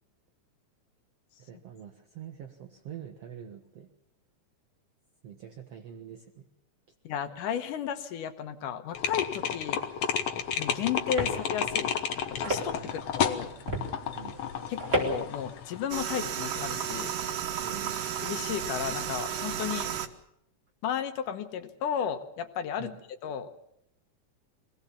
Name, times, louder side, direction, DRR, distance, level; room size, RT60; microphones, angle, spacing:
voice 1, 1.4-3.9 5.2-6.4 11.2-11.3 12.8-13.1 14.1-14.4 17.6-18.1 22.8-23.0, right 9 dB, 60° right, 4 dB, 2.0 m, -45 dB
voice 2, 7.0-9.8 10.6-12.0 12.4-13.6 14.7-17.1 18.2-19.9 20.8-22.9 23.2-23.5, left 9 dB, 85° left, 7 dB, 2.7 m, -33 dB
sound 1, 8.9-15.8, left 8 dB, 60° left, 2.1 m, -32 dB
sound 2, 10.4-15.4, right 1 dB, 20° right, 4.3 m, -35 dB
sound 3, 15.9-20.1, right 9 dB, 80° right, 2.8 m, -33 dB
24.5 x 18.0 x 7.1 m, 0.77 s
omnidirectional pair, 3.6 m